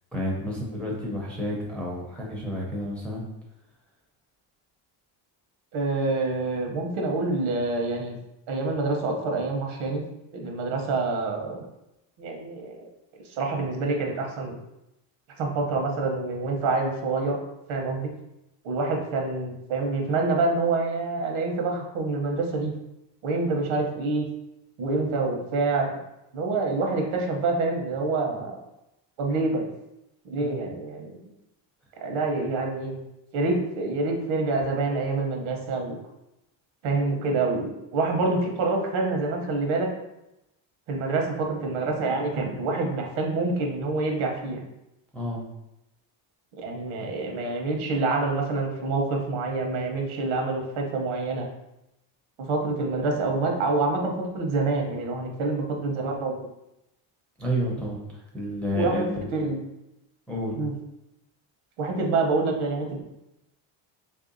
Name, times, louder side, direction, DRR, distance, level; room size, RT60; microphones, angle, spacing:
voice 1, 0.1-3.2 30.4-30.6 45.1-45.4 57.4-59.3 60.3-60.6, equal, 5° left, -4 dB, 0.5 m, -30 dB
voice 2, 5.7-8.2 8.5-10.0 10.3-11.7 12.2-12.9 13.3-14.6 15.4-17.4 17.7-18.1 18.6-22.7 23.2-24.3 24.8-25.9 26.3-28.6 29.2-29.7 30.2-31.2 32.0-32.9 33.3-36.0 36.8-39.9 40.9-44.6 46.6-51.5 52.4-56.5 58.7-59.0 59.3-59.7 60.6-60.7 61.8-63.0, right 3 dB, 75° right, 1 dB, 1.0 m, -27 dB
3.2 x 2.7 x 3.9 m, 0.88 s
cardioid pair, 165°, 48 cm